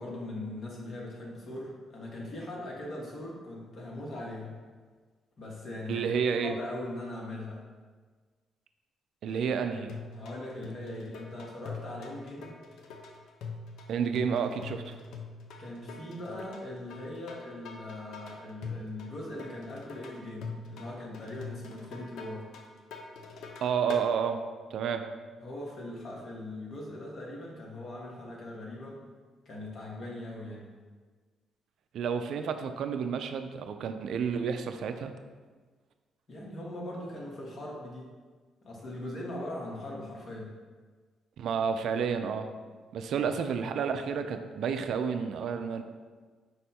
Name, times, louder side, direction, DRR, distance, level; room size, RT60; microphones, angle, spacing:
voice 1, 0.0-4.6 5.4-6.1 6.4-7.6 9.3-9.4 9.8-9.9 10.1-12.6 15.6-22.5 25.4-29.0 29.4-30.7 36.3-38.1 38.6-40.5 43.2-43.3, left 1 dB, 50° left, -3 dB, 1.1 m, -40 dB
voice 2, 5.9-6.6 9.2-10.0 13.9-15.0 23.6-24.4 24.7-25.1 31.9-35.1 41.4-42.5 42.9-45.8, right 6 dB, 70° right, 8 dB, 0.3 m, -30 dB
sound 1, 9.9-24.1, left 4 dB, 80° left, 0.5 m, -43 dB
5.3 x 2.2 x 4.2 m, 1.4 s
cardioid pair, 90°, 0 cm